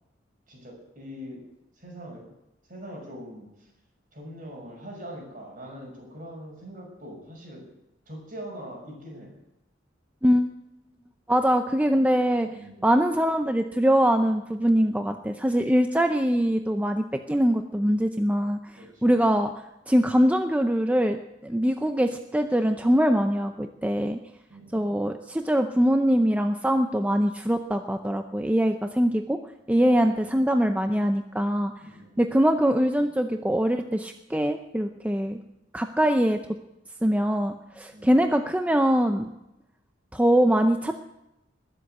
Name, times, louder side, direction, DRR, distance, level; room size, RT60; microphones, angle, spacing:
voice 1, 0.5-1.5 1.8-2.3 2.7-3.5 4.1-7.7 8.1-9.3 12.5-12.9 18.8-19.1 24.5-24.9 29.8-30.3 31.8-32.3 37.9-38.3, equal, 45° right, 0 dB, 6.3 m, -42 dB
voice 2, 11.3-12.5 12.8-18.6 19.0-19.5 19.9-24.2 24.7-29.4 29.7-31.7 32.2-35.4 35.7-36.4 37.0-39.3 40.1-41.0, equal, 10° right, 6 dB, 0.6 m, -23 dB
21.0 x 7.9 x 8.0 m, 0.90 s
head